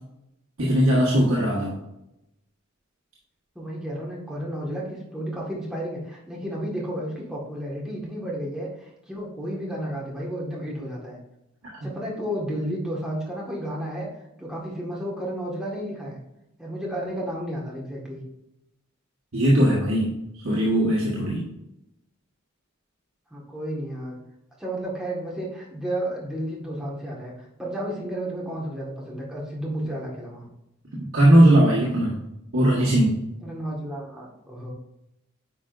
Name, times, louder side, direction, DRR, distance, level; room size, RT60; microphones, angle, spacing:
voice 1, 0.6-1.7 19.3-20.2 20.4-21.5 31.1-32.2 32.5-33.2, right 1 dB, 75° right, -5 dB, 1.5 m, -19 dB
voice 2, 3.6-11.2 11.8-14.1 14.4-16.2 16.6-18.2 23.3-24.2 24.6-30.4 33.4-34.7, right 1 dB, 5° right, -4 dB, 1.6 m, -32 dB
9.5 x 5.0 x 2.6 m, 0.88 s
head